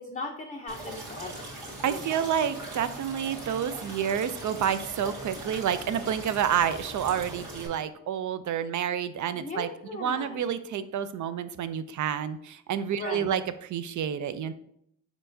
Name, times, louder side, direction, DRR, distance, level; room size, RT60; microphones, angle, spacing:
voice 1, 0.1-1.5 1.9-2.1 9.3-10.4 13.0-13.3, left 3 dB, 15° left, 0 dB, 0.6 m, -38 dB
sound 1, 0.7-7.7, right 2 dB, 75° right, 1.7 m, -40 dB
voice 2, 1.8-14.5, right 8 dB, 40° right, 12 dB, 0.4 m, -29 dB
4.5 x 4.2 x 2.6 m, 0.72 s
supercardioid pair, 60°, 48 cm